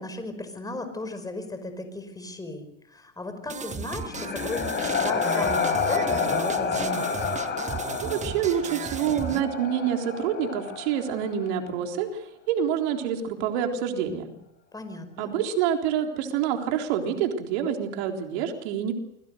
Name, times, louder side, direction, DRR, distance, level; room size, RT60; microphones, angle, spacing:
voice 1, 0.0-7.1 14.7-15.3, left 2 dB, 10° left, 8 dB, 5.3 m, -36 dB
sound 1, 3.5-9.4, right 6 dB, 20° right, 1.8 m, -35 dB
sound 2, 3.6-11.5, left 5 dB, 30° left, 6.9 m, -29 dB
voice 2, 8.0-14.3 15.2-18.9, right 9 dB, 65° right, 3 dB, 3.9 m, -27 dB
28.5 x 21.5 x 6.6 m, 0.79 s
supercardioid pair, 115°, 36 cm